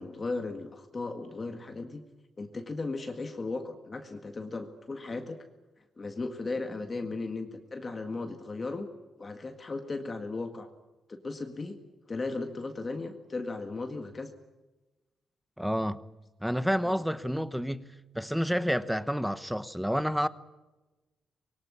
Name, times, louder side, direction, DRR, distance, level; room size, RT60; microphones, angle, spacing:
voice 1, 0.0-2.0 2.4-5.4 6.0-8.9 9.2-10.7 11.1-11.8 12.1-14.3 16.8-17.0, left 3 dB, 25° left, 1.9 m, -36 dB
voice 2, 15.6-16.0 16.4-17.8 18.1-20.3, equal, ahead, 0.9 m, -29 dB
25.5 x 22.5 x 8.4 m
wide cardioid pair, 170°, 0 cm